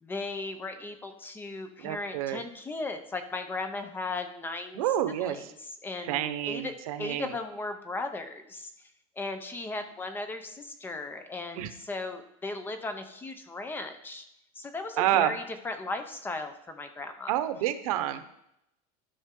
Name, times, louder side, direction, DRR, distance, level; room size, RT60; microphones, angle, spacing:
voice 1, 0.0-4.8 5.2-5.4 5.8-6.7 7.0-8.7 9.2-14.2 14.6-17.3, left 3 dB, 10° left, 8 dB, 0.6 m, -36 dB
voice 2, 1.8-2.4 4.7-5.5 6.0-7.4 11.6-11.7 15.0-15.4 17.3-18.2, right 12 dB, 90° right, 11 dB, 0.8 m, -29 dB
12.5 x 5.5 x 3.7 m, 0.79 s
cardioid pair, 165°, 18 cm